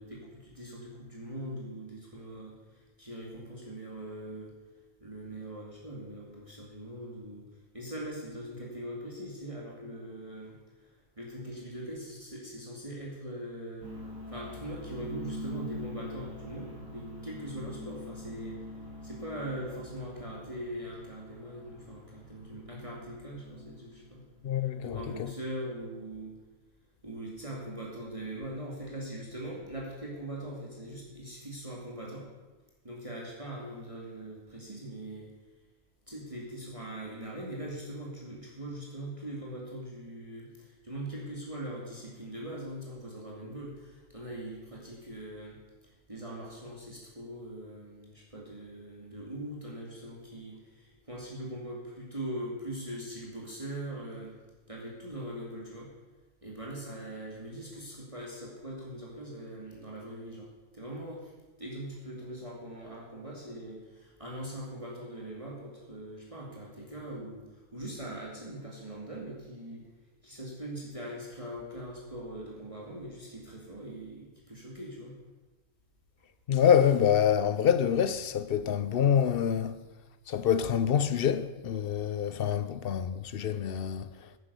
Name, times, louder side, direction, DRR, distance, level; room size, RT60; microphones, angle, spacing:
voice 1, 0.0-4.5 5.0-7.5 7.7-10.6 11.2-13.9 14.3-18.6 19.0-24.2 24.8-26.4 27.0-32.3 32.8-35.3 36.1-45.6 46.1-54.4 54.7-55.9 56.4-60.5 60.7-61.3 61.6-69.8 70.2-75.2, right 1 dB, 25° right, 2.5 m, -41 dB
sound 1, 13.8-24.0, equal, 70° right, 4.5 m, -44 dB
voice 2, 24.4-25.3 76.5-79.8 80.3-84.1, left 8 dB, 55° left, 0.7 m, -26 dB
10.5 x 9.8 x 6.8 m
omnidirectional pair, 1.5 m